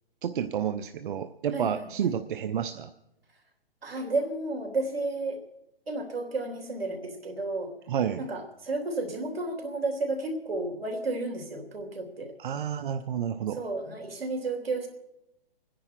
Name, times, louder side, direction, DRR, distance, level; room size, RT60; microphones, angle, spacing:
voice 1, 0.2-2.9 7.9-8.3 12.4-13.6, right 8 dB, 60° right, 10 dB, 0.8 m, -30 dB
voice 2, 1.5-2.1 3.8-5.4 5.9-7.7 8.2-12.3 13.5-14.9, right 2 dB, 80° right, 4 dB, 3.4 m, -32 dB
25.5 x 10.5 x 4.6 m, 0.85 s
hypercardioid pair, 140°, 29 cm